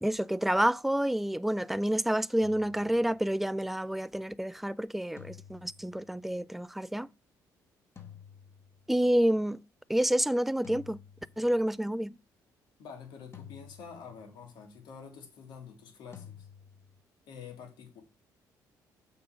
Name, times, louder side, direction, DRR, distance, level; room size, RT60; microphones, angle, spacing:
voice 1, 0.0-7.1 8.9-9.6 9.9-11.0 11.4-12.2, right 1 dB, 5° right, 0.3 m, -28 dB
sound 1, 2.4-3.4 5.2-6.3 8.0-9.1 10.6-11.8 13.3-14.5 16.1-17.0, left 8 dB, 35° left, 1.5 m, -52 dB
voice 2, 12.8-16.5 17.3-18.0, left 6 dB, 80° left, 2.4 m, -47 dB
6.8 x 3.8 x 6.4 m
cardioid pair, 95°, 8 cm